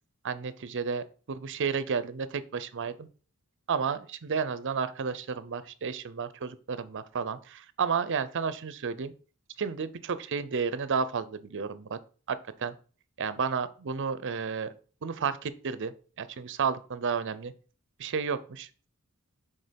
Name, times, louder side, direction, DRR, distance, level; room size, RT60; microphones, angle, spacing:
voice 1, 0.2-3.1 3.7-9.1 9.6-12.0 12.3-12.7 13.2-14.7 15.0-15.9 16.2-17.5 18.0-18.7, right 6 dB, 60° right, 14 dB, 0.6 m, -32 dB
6.5 x 3.6 x 5.1 m, 0.39 s
head